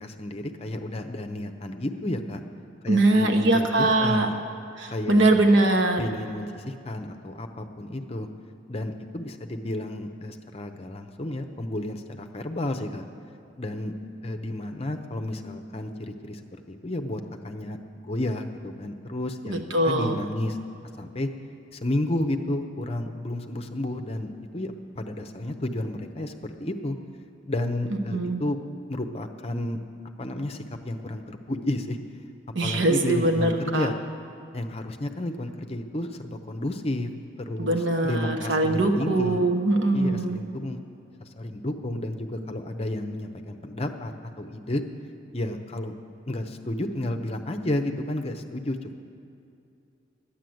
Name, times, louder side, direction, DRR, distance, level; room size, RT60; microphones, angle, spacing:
voice 1, 0.0-2.4 2.8-4.4 4.9-5.4 6.0-8.3 8.7-13.0 13.6-13.9 14.2-16.4 16.7-20.6 21.0-21.3 21.7-27.0 27.5-28.6 28.9-29.8 30.2-32.0 32.6-33.9 34.5-37.1 37.4-39.4 39.9-40.8 41.2-44.1 44.4-44.8 45.3-45.9 46.3-49.0, left 1 dB, 30° left, 6 dB, 0.7 m, -31 dB
voice 2, 2.9-4.3 4.8-6.0 19.5-20.2 28.1-28.4 32.5-33.9 37.6-40.4, right 2 dB, 75° right, 4 dB, 1.0 m, -22 dB
11.5 x 10.0 x 7.8 m, 2.7 s
head